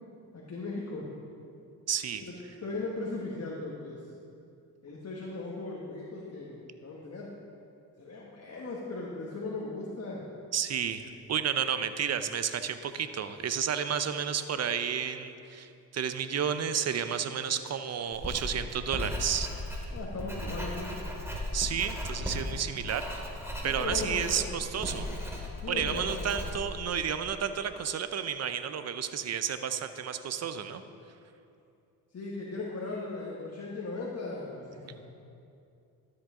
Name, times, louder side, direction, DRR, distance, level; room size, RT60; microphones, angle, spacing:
voice 1, 0.3-1.1 2.2-2.3 2.6-4.0 4.8-7.3 8.0-10.2 19.9-21.1 23.6-24.4 25.6-26.1 32.1-35.0, left 3 dB, 40° left, -4 dB, 1.5 m, -38 dB
voice 2, 1.9-2.2 10.5-19.5 21.5-23.1 23.6-25.1 25.7-30.8, right 8 dB, 45° right, 10 dB, 0.7 m, -31 dB
Writing, 18.1-27.5, left 1 dB, 5° right, 2.2 m, -37 dB
12.5 x 7.9 x 3.8 m, 2.6 s
supercardioid pair, 65°, 38 cm